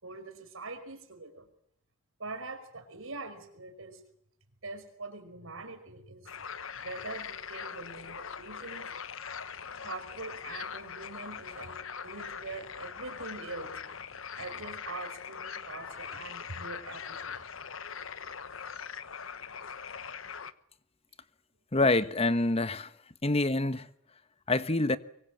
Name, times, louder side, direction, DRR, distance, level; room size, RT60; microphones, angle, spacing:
voice 1, 0.0-1.5 2.2-4.0 4.6-6.3 6.8-8.9 9.8-13.7 14.4-17.4, right 3 dB, 85° right, 5.3 m, -43 dB
sound 1, 6.3-20.5, left 6 dB, 80° left, 1.2 m, -42 dB
voice 2, 21.7-22.9 23.2-23.9 24.5-25.0, left 2 dB, 30° left, 1.2 m, -26 dB
24.0 x 24.0 x 7.8 m
head